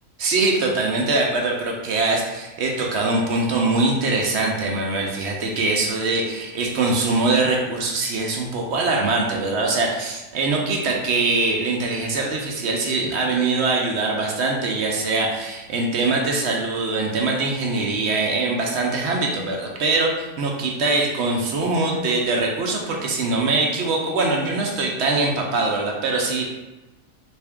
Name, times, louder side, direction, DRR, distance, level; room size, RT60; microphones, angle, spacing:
voice 1, 0.2-26.5, right 3 dB, 60° right, 0 dB, 0.8 m, -22 dB
3.4 x 2.6 x 3.5 m, 1.1 s
omnidirectional pair, 1.5 m